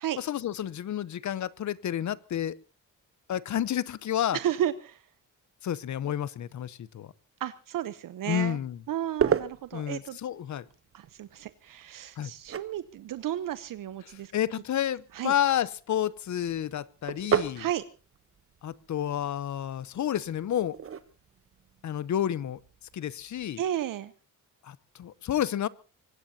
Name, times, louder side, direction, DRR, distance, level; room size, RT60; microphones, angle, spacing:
voice 1, 0.2-2.6 3.3-4.4 5.6-7.1 8.3-8.8 9.7-10.6 12.2-12.3 14.3-17.7 18.6-20.8 21.8-22.6 22.9-23.6 24.6-25.7, left 10 dB, 60° left, 19 dB, 0.8 m, -30 dB
voice 2, 4.3-5.0 7.4-8.6 8.9-10.2 10.9-14.3 15.1-15.3 17.5-17.8 23.6-24.1, right 11 dB, 75° right, 13 dB, 0.8 m, -33 dB
sound 1, 8.6-23.5, right 7 dB, 40° right, 1.0 m, -36 dB
24.5 x 19.5 x 2.8 m, 0.35 s
cardioid pair, 120°, 33 cm